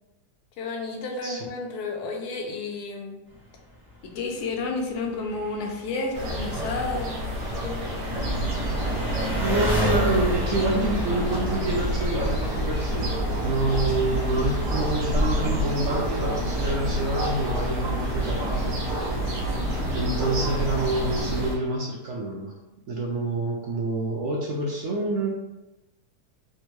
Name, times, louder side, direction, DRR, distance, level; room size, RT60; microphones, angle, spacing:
voice 1, 0.6-3.2 4.0-7.3 7.6-8.2, left 3 dB, 75° left, 2 dB, 1.1 m, -31 dB
Engine, 3.3-21.4, left 1 dB, 30° right, 0.7 m, -37 dB
sound 1, 6.1-21.5, left 1 dB, 85° right, 1.4 m, -30 dB
sound 2, 8.1-21.5, right 2 dB, 20° left, 0.9 m, -30 dB
voice 2, 9.4-18.8 19.9-22.5 22.9-25.3, right 2 dB, 70° right, -2 dB, 0.8 m, -27 dB
3.4 x 2.2 x 3.0 m, 0.97 s
omnidirectional pair, 1.7 m